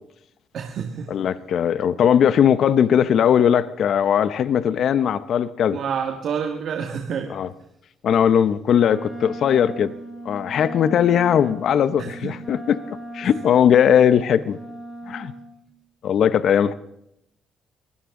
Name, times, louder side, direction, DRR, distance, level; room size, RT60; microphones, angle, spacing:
voice 1, 0.5-1.1 5.7-7.3 12.0-12.3, right 7 dB, 70° right, 3 dB, 1.8 m, -28 dB
voice 2, 1.1-5.8 7.3-7.5 8.0-9.9 10.2-12.8 13.1-14.6 15.1-15.3 16.0-16.7, left 8 dB, 65° left, 15 dB, 0.7 m, -19 dB
Wind instrument woodwind instrument, 8.7-15.5, right 1 dB, 15° right, 4.9 m, -37 dB
23.0 x 16.5 x 3.8 m, 0.77 s
cardioid pair, 90°, 0 cm